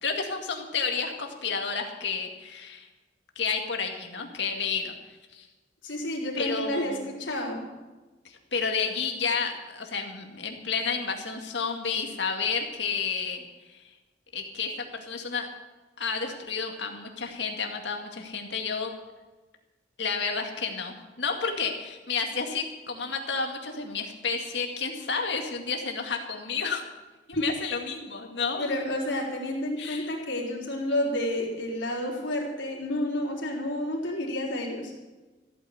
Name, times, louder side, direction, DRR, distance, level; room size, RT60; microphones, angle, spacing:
voice 1, 0.0-2.9 3.4-4.9 5.3-5.5 6.4-7.0 8.2-13.4 13.7-13.8 14.3-15.5 16.0-18.9 20.0-26.8 27.3-28.7 29.8-30.1, left 5 dB, 70° left, 3 dB, 2.2 m, -31 dB
voice 2, 5.8-7.6 27.4-27.5 28.6-34.9, left 1 dB, 85° left, -2 dB, 4.1 m, -30 dB
15.0 x 9.2 x 8.2 m, 1.2 s
head